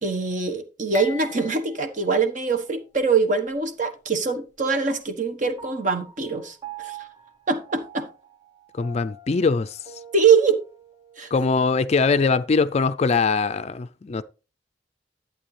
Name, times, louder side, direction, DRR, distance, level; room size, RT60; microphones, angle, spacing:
voice 1, 0.0-7.0 7.5-8.1 10.1-10.6 11.2-11.3, right 5 dB, 45° right, 1.2 m, -23 dB
sound 1, 0.9-3.1 3.5-3.6 4.5-4.6, left 5 dB, 15° left, 1.1 m, -42 dB
Piano, 5.6-12.3, right 7 dB, 25° right, 1.0 m, -45 dB
voice 2, 8.8-9.8 11.3-14.2, left 4 dB, 35° left, 0.4 m, -22 dB
11.5 x 8.3 x 3.2 m
head